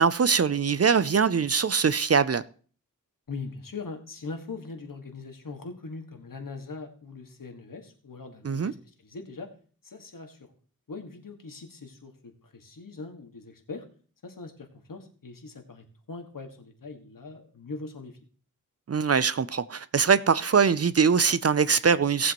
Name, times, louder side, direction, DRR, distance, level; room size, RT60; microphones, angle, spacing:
voice 1, 0.0-2.4 8.4-8.7 18.9-22.3, right 6 dB, 45° right, 0.5 m, -22 dB
voice 2, 3.3-8.8 9.0-9.5 9.8-10.4 10.9-13.9 14.2-18.2, left 3 dB, 65° left, 1.9 m, -41 dB
17.5 x 7.5 x 3.0 m
wide cardioid pair, 85°, 35 cm